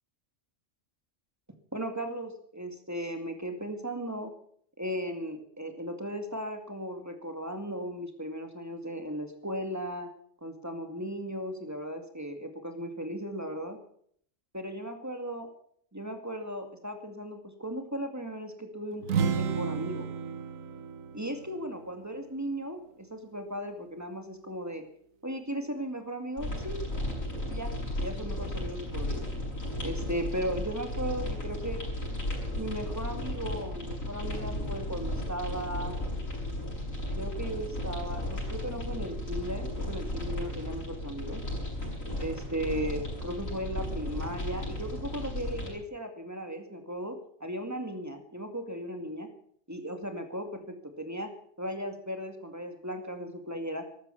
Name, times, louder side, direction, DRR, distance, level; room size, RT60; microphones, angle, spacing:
voice 1, 1.7-4.3 4.8-10.1 10.4-13.8 14.5-15.5 15.9-20.1 21.1-24.8 25.2-26.9 27.5-29.3 29.8-31.8 32.6-36.0 37.2-41.4 42.2-49.3 49.7-51.3 51.6-53.9, equal, 10° right, 5 dB, 2.2 m, -36 dB
sound 1, 19.0-22.7, right 6 dB, 85° right, 1.4 m, -33 dB
sound 2, 26.4-45.7, left 1 dB, 90° left, 7.0 m, -35 dB
14.0 x 12.5 x 7.0 m, 0.63 s
omnidirectional pair, 1.4 m